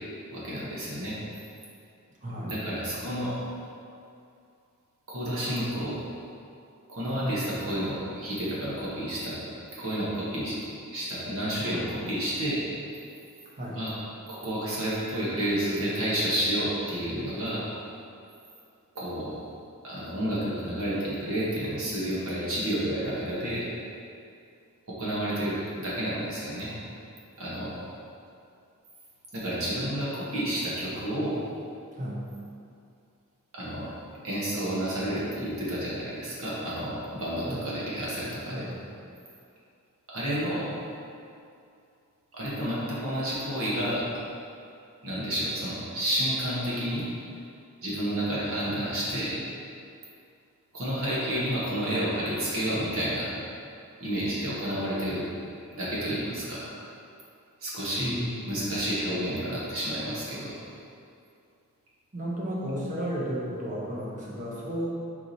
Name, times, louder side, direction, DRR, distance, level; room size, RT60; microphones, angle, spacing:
voice 1, 0.3-1.2 2.4-3.4 5.1-6.0 6.9-9.4 9.8-10.6 10.9-12.6 13.7-13.9 14.3-17.7 18.9-19.3 19.8-23.7 24.9-26.7 27.4-27.7 29.3-31.4 33.5-33.9 34.2-38.6 40.1-40.7 42.3-44.0 45.0-47.0 47.8-49.3 50.7-53.3 54.0-55.2 55.7-56.7 57.6-58.2 58.4-60.5, equal, 70° right, -7 dB, 1.5 m, -30 dB
voice 2, 2.2-2.5 7.2-7.4 13.6-13.8 32.0-32.2 37.5-37.7 38.5-38.7 58.0-58.4 62.1-64.9, equal, 35° right, -5 dB, 1.1 m, -33 dB
4.8 x 4.8 x 4.2 m, 2.5 s
head